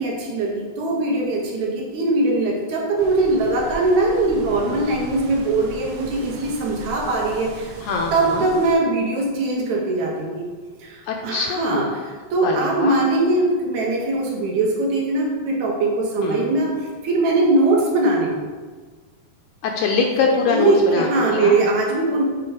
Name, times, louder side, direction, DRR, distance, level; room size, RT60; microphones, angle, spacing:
voice 1, 0.0-7.7 8.1-10.5 10.8-16.8 17.0-18.3 20.5-22.2, right 2 dB, 70° right, -1 dB, 2.1 m, -21 dB
sound 1, 3.0-8.7, right 3 dB, 90° right, 1.4 m, -38 dB
voice 2, 7.8-8.5 11.1-11.9 12.4-13.0 16.2-16.5 19.6-21.1 21.3-21.6, left 4 dB, 80° left, 1 dB, 1.8 m, -23 dB
7.6 x 3.7 x 4.7 m, 1.4 s
omnidirectional pair, 3.9 m